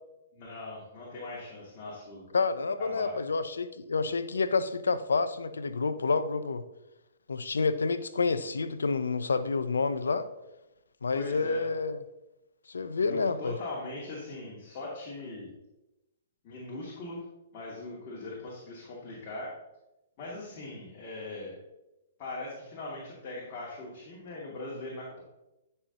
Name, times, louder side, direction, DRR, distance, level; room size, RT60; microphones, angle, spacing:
voice 1, 0.3-2.3 2.8-3.2 11.1-11.7 13.0-15.5 16.4-17.2 17.5-19.5 20.2-21.6 22.2-25.2, left 2 dB, 40° left, -5 dB, 2.4 m, -40 dB
voice 2, 2.3-6.6 7.3-10.3 11.0-12.0 12.7-13.6, left 4 dB, 85° left, 12 dB, 0.6 m, -29 dB
12.5 x 5.6 x 2.9 m, 0.95 s
hypercardioid pair, 130°, 0 cm